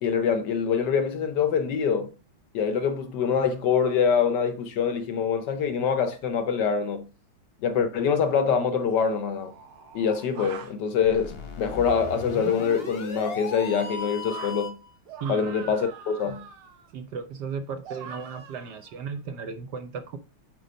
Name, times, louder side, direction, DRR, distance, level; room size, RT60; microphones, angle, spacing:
voice 1, 0.0-2.1 2.5-7.0 7.6-9.5 9.9-14.8 15.3-16.4, left 6 dB, 65° left, 1.1 m, -25 dB
sound 1, 7.9-8.0 8.8-10.7 11.9-14.6 15.1-16.9 17.8-19.1, right 6 dB, 80° right, 2.0 m, -45 dB
sound 2, 11.0-14.9, left 4 dB, 40° left, 1.0 m, -36 dB
voice 2, 16.9-20.2, right 5 dB, 65° right, 1.2 m, -35 dB
8.3 x 4.1 x 5.1 m
omnidirectional pair, 2.3 m